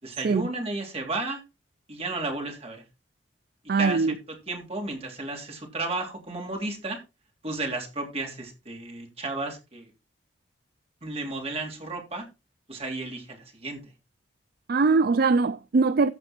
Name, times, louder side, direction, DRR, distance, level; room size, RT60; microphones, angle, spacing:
voice 1, 0.0-1.4 1.9-2.8 3.8-4.1 4.5-7.0 7.4-9.9 11.0-12.3 12.7-13.9, right 2 dB, 35° right, 3.2 m, -33 dB
voice 2, 3.7-4.1 14.7-16.1, right 4 dB, 55° right, 0.4 m, -22 dB
14.5 x 5.1 x 4.3 m
head